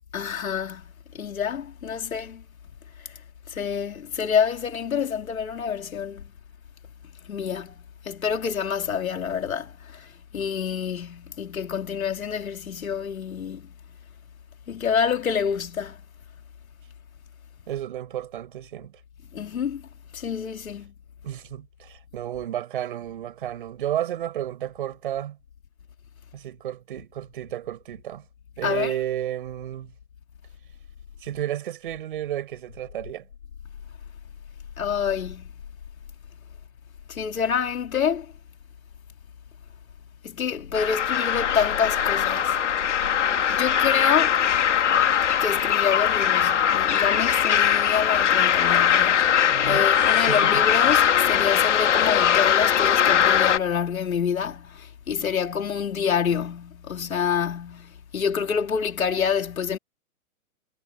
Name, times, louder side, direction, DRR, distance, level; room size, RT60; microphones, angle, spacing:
voice 1, 0.1-2.4 3.0-3.1 3.5-6.3 7.2-13.7 14.7-16.0 19.3-19.8 20.1-20.9 28.6-28.9 34.8-35.5 37.1-38.3 40.2-42.6 43.3-44.4 45.3-59.8, left 7 dB, 70° left, 4.5 m, -27 dB
voice 2, 17.7-19.0 21.2-25.4 26.3-28.2 28.6-29.9 31.2-33.3 49.4-50.6, right 11 dB, 35° right, 6.0 m, -32 dB
sound 1, 40.7-53.6, left 9 dB, 55° left, 2.7 m, -21 dB
hypercardioid pair, 180°, 43 cm